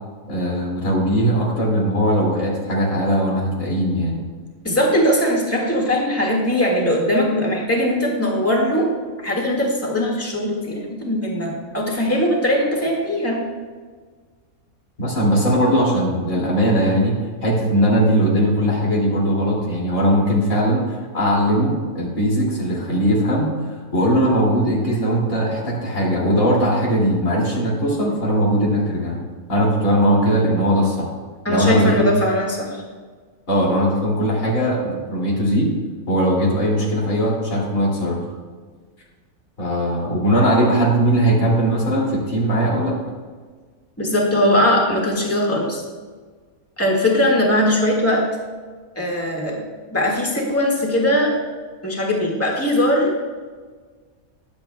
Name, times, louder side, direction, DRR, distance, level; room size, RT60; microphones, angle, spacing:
voice 1, 0.3-4.2 15.0-29.2 29.5-31.1 31.5-32.1 33.5-35.7 36.1-38.2 39.6-43.0, equal, 65° left, -3 dB, 3.2 m, -19 dB
voice 2, 4.6-8.9 9.2-13.4 31.4-32.8 44.0-45.8 46.8-48.2 49.0-49.6 49.9-51.3 51.8-53.1, left 1 dB, 10° left, -2 dB, 1.8 m, -20 dB
21.0 x 7.7 x 2.3 m, 1.5 s
omnidirectional pair, 1.5 m